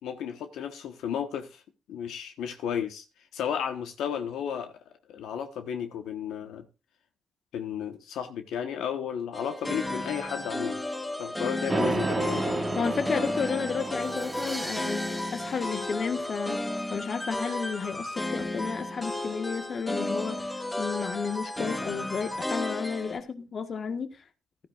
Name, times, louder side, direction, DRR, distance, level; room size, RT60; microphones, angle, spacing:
voice 1, 0.0-1.6 1.9-3.0 3.3-4.8 5.1-6.6 7.5-10.8 11.2-12.6, left 8 dB, 80° left, 1.2 m, -33 dB
sound 1, 9.3-23.2, left 1 dB, 15° left, 3.6 m, -33 dB
sound 2, 11.7-15.8, right 3 dB, 25° right, 1.4 m, -32 dB
voice 2, 12.7-16.6 16.9-24.1, left 6 dB, 45° left, 1.5 m, -32 dB
sound 3, 14.0-16.9, right 1 dB, 5° right, 0.7 m, -39 dB
15.0 x 12.5 x 2.5 m
cardioid pair, 90°, 0 cm